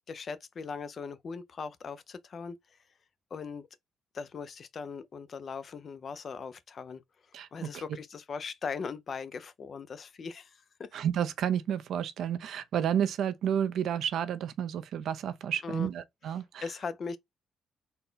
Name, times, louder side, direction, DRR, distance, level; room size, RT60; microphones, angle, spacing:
voice 1, 0.1-2.6 3.3-3.7 4.1-7.0 7.5-10.9 15.6-15.9 16.6-17.2, left 5 dB, 50° left, 0.6 m, -39 dB
voice 2, 7.3-7.8 10.9-16.7, right 9 dB, 75° right, 0.5 m, -31 dB
4.1 x 2.2 x 3.8 m
cardioid pair, 90°, 0 cm